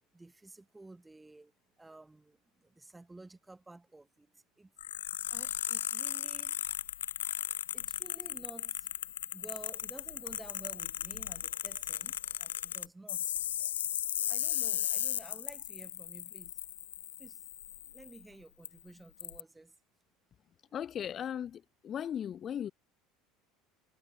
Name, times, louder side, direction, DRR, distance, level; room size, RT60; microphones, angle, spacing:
voice 1, 0.1-4.7 5.3-6.6 7.7-8.9 9.3-13.7 14.3-16.6 17.2-17.5 17.9-19.8, right 2 dB, 10° right, 4.1 m, -53 dB
sound 1, 4.8-18.2 18.7-18.8 19.2-19.4, left 11 dB, 90° left, 0.3 m, -36 dB
voice 2, 20.7-22.7, left 9 dB, 40° left, 0.9 m, -37 dB
hypercardioid pair, 80°, 0 cm